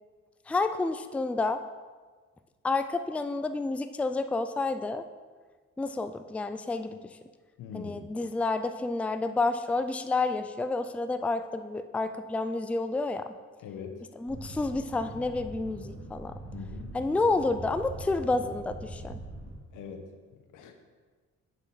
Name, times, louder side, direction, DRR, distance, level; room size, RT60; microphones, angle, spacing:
voice 1, 0.5-1.6 2.6-5.0 5.8-7.2 7.7-13.3 14.2-16.3 16.9-19.2, left 3 dB, 5° left, 9 dB, 0.4 m, -29 dB
voice 2, 7.6-8.1 13.6-14.1 16.5-17.0 19.7-20.7, left 6 dB, 85° left, 6 dB, 1.1 m, -42 dB
sound 1, 14.3-19.6, right 2 dB, 80° right, 2.0 m, -42 dB
7.6 x 6.5 x 4.8 m, 1.4 s
cardioid pair, 90°, 30 cm